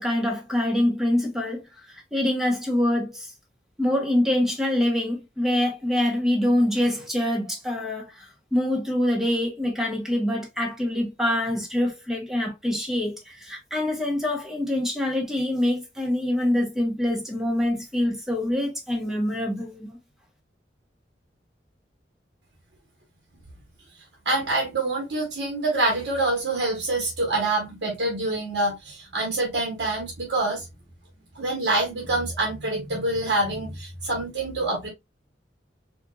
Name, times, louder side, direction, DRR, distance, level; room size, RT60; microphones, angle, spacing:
voice 1, 0.0-1.6 2.1-3.3 3.8-20.0, left 1 dB, 5° right, 1.1 m, -25 dB
voice 2, 24.2-30.7 31.3-34.9, right 2 dB, 80° right, 1.2 m, -26 dB
4.5 x 2.5 x 2.3 m
head